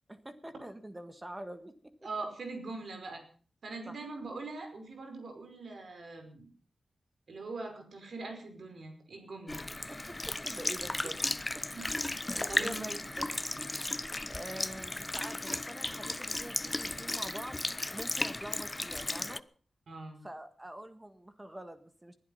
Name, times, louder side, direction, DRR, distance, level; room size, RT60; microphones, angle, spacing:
voice 1, 0.1-1.7 3.9-4.0 10.1-11.2 11.5-11.6 12.3-13.3 13.6-13.7 14.2-17.6 17.9-19.4 20.2-22.1, right 1 dB, 20° right, 9 dB, 1.6 m, -45 dB
voice 2, 2.0-3.2 3.6-6.5 7.3-9.6 11.0-11.1 12.2-12.8 19.9-20.3, right 3 dB, 70° right, 5 dB, 5.4 m, -42 dB
Sink (filling or washing) / Liquid, 9.5-19.4, left 2 dB, 20° left, 0.7 m, -35 dB
20.0 x 11.5 x 5.6 m, 0.42 s
cardioid pair, 70°, 0 cm